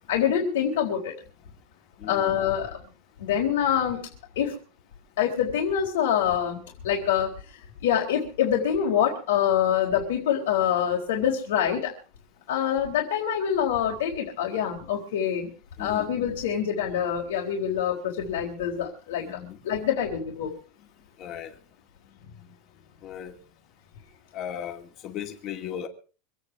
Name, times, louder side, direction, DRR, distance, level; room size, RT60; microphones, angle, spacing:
voice 1, 0.1-1.1 2.1-2.8 3.2-4.1 4.4-4.6 5.2-6.6 6.8-7.3 7.8-11.9 12.5-15.5 15.8-19.4 19.6-20.5, left 9 dB, 85° left, 4.0 m, -25 dB
voice 2, 15.8-16.1 19.3-19.6 21.2-21.5 22.2-22.3 23.0-23.3 24.3-25.9, left 9 dB, 30° left, 2.5 m, -36 dB
26.0 x 9.2 x 4.8 m
supercardioid pair, 170°, 0 cm